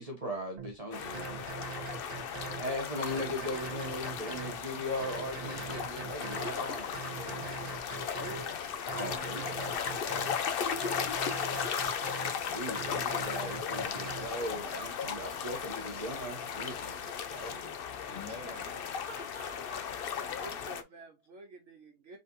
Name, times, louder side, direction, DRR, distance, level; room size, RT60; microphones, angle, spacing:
voice 1, 0.0-1.4 2.5-7.8 8.9-10.1 12.2-17.7, equal, 30° right, 0.9 m, -39 dB
sound 1, 0.6-0.7 1.1-2.7 3.1-4.6 5.0-6.5 6.9-8.5 8.9-10.4 10.8-12.3 12.7-14.3, right 7 dB, 75° right, 1.5 m, -42 dB
sound 2, 0.9-20.8, left 7 dB, 60° left, 0.6 m, -36 dB
sound 3, 2.8-17.5, left 6 dB, 80° left, 1.4 m, -51 dB
voice 2, 8.0-8.6 18.1-18.9 19.6-19.7 20.4-22.2, right 2 dB, 55° right, 1.3 m, -49 dB
voice 3, 18.0-18.7 19.1-19.9, left 2 dB, 35° left, 2.5 m, -49 dB
4.0 x 3.8 x 2.7 m
omnidirectional pair, 1.6 m